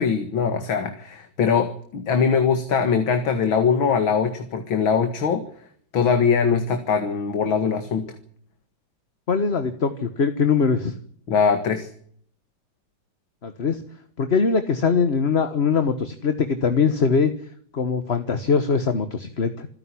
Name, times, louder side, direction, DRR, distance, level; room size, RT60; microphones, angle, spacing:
voice 1, 0.0-5.4 5.9-8.1 11.3-11.9, left 6 dB, 80° left, 8 dB, 2.6 m, -22 dB
voice 2, 9.3-10.9 13.4-13.8 14.2-17.3 17.7-19.7, left 5 dB, 35° left, 9 dB, 1.4 m, -22 dB
27.0 x 11.0 x 10.0 m, 0.63 s
omnidirectional pair, 2.2 m